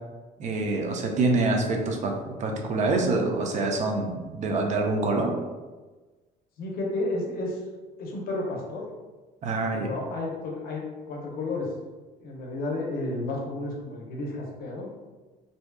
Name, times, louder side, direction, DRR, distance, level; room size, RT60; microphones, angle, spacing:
voice 1, 0.4-5.3 9.4-9.9, right 3 dB, 45° right, 2 dB, 0.5 m, -26 dB
voice 2, 6.6-7.6 8.0-8.9 9.7-11.7 12.2-14.9, left 2 dB, 65° left, -1 dB, 0.6 m, -32 dB
2.6 x 2.2 x 2.2 m, 1.3 s
cardioid pair, 110°, 17 cm